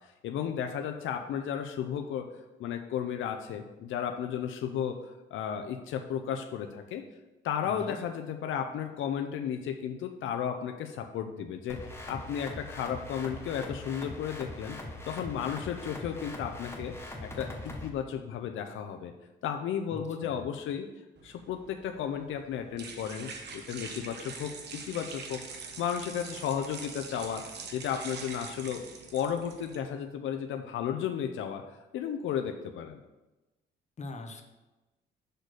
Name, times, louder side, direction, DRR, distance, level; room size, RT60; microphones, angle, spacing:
voice 1, 0.2-2.3 2.6-7.0 7.4-11.8 12.1-14.8 15.1-16.9 17.2-19.1 19.4-20.9 21.2-25.4 25.8-27.4 27.7-28.8 29.1-31.6 31.9-33.0, left 8 dB, 80° left, 5 dB, 0.6 m, -34 dB
voice 2, 7.6-8.0 19.9-20.4 34.0-34.4, left 2 dB, 35° left, 5 dB, 1.0 m, -42 dB
sound 1, 11.7-17.9, left 1 dB, 10° left, 1.1 m, -42 dB
sound 2, 21.2-29.8, right 4 dB, 60° right, 1.1 m, -44 dB
6.6 x 4.1 x 6.3 m, 1.1 s
cardioid pair, 90°, 20 cm